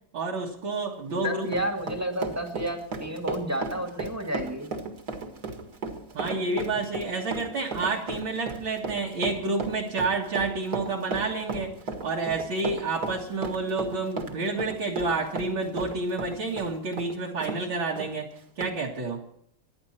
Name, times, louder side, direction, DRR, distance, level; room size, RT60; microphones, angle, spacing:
voice 1, 0.1-1.5 6.1-11.7 12.0-18.3 18.6-19.2, right 3 dB, 65° right, -2 dB, 2.6 m, -29 dB
Run, 1.0-17.6 18.0-18.1 18.6-18.7, right 3 dB, 45° right, 2.3 m, -35 dB
voice 2, 1.1-4.7, equal, 5° right, 3 dB, 1.9 m, -31 dB
25.5 x 11.0 x 4.4 m, 0.70 s
omnidirectional pair, 2.4 m